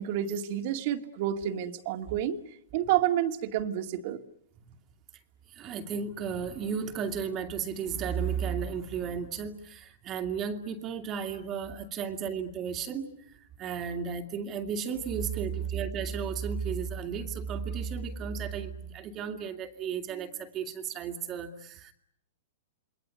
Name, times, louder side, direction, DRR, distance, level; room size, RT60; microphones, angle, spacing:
voice 1, 0.0-2.4 2.7-4.2, right 11 dB, 50° right, 7 dB, 2.1 m, -29 dB
voice 2, 5.5-21.9, right 6 dB, 30° right, 5 dB, 2.3 m, -34 dB
28.0 x 21.5 x 9.6 m, 0.69 s
hypercardioid pair, 140°, 0 cm